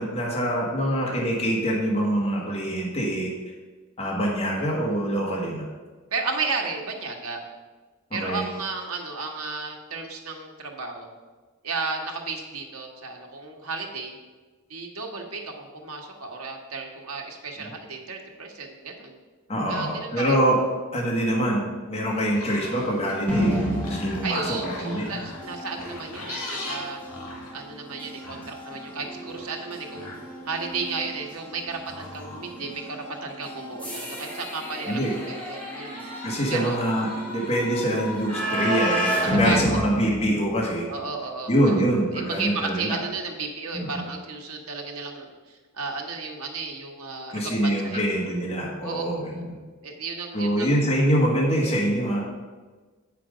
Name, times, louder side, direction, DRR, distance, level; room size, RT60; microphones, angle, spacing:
voice 1, 0.0-3.3 4.0-5.6 8.1-8.4 19.5-20.6 20.9-21.6 21.9-25.0 34.9-35.1 36.2-40.8 41.5-43.0 43.7-44.0 47.3-49.5 50.3-52.2, right 1 dB, 30° left, -3 dB, 1.4 m, -25 dB
voice 2, 6.1-7.4 8.1-11.1 11.6-14.2 14.7-19.1 19.7-20.4 24.2-27.0 27.5-30.1 30.4-36.0 36.5-36.8 39.2-39.8 40.9-41.8 42.1-48.0 48.8-49.0 49.8-50.7, right 4 dB, 85° right, 2 dB, 1.2 m, -33 dB
sound 1, 22.1-32.9, left 2 dB, 85° left, 2.3 m, -41 dB
sound 2, 23.3-41.0, equal, 5° left, 1.9 m, -32 dB
7.8 x 5.9 x 5.0 m, 1.3 s
head